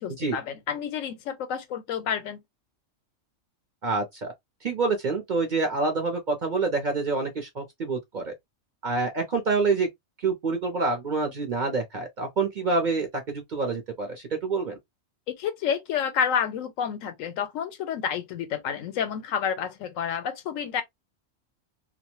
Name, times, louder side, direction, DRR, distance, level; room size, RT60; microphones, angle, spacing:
voice 1, 0.0-2.4 15.3-20.8, left 8 dB, 85° left, 1.0 m, -29 dB
voice 2, 3.8-4.3 4.6-8.3 8.8-9.9 10.2-14.8, right 3 dB, 50° right, 0.6 m, -27 dB
2.3 x 2.1 x 2.9 m
omnidirectional pair, 1.3 m